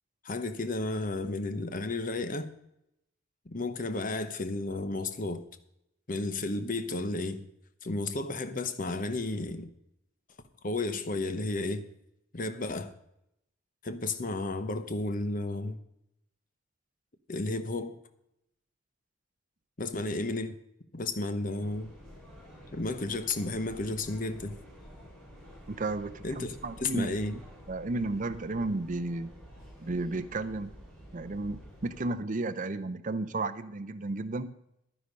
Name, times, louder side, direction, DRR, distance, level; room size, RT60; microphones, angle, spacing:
voice 1, 0.2-2.5 3.5-5.4 6.1-7.4 7.8-9.7 10.6-11.8 12.3-12.9 13.8-15.8 17.3-18.0 19.8-20.6 20.9-21.9 22.7-24.6 26.2-27.3, left 2 dB, 40° left, 0.9 m, -32 dB
sound 1, 21.6-32.1, equal, 5° left, 5.7 m, -50 dB
voice 2, 25.7-27.4 27.7-29.3 29.8-30.7 31.1-34.5, right 2 dB, 40° right, 0.6 m, -33 dB
11.0 x 9.9 x 5.3 m
head